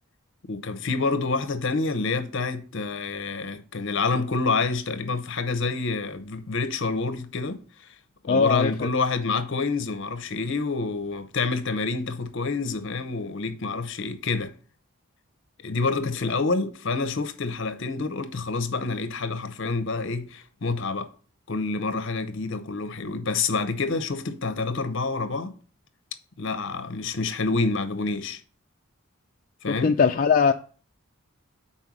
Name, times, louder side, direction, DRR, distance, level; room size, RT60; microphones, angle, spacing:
voice 1, 0.5-7.9 8.2-14.5 15.6-21.1 21.5-25.5 26.4-28.4 29.6-30.0, left 4 dB, 60° left, 0.7 m, -28 dB
voice 2, 8.3-8.7 29.7-30.5, left 5 dB, 40° left, 0.3 m, -20 dB
5.4 x 4.3 x 6.0 m
head